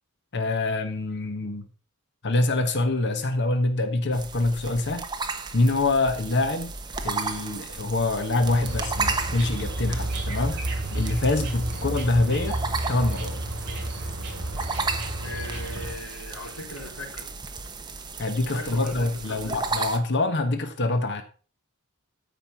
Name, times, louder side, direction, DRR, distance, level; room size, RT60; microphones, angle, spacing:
voice 1, 0.3-1.7 2.2-5.1 5.5-6.7 7.0-12.6 12.9-13.4 18.2-21.2, left 2 dB, 55° left, 1.2 m, -25 dB
sound 1, 4.1-20.0, right 4 dB, 20° right, 1.1 m, -34 dB
sound 2, 8.4-15.9, right 1 dB, 50° right, 6.4 m, -31 dB
voice 2, 15.2-17.3 18.5-19.6, left 1 dB, 85° left, 4.4 m, -39 dB
13.5 x 5.4 x 5.7 m
head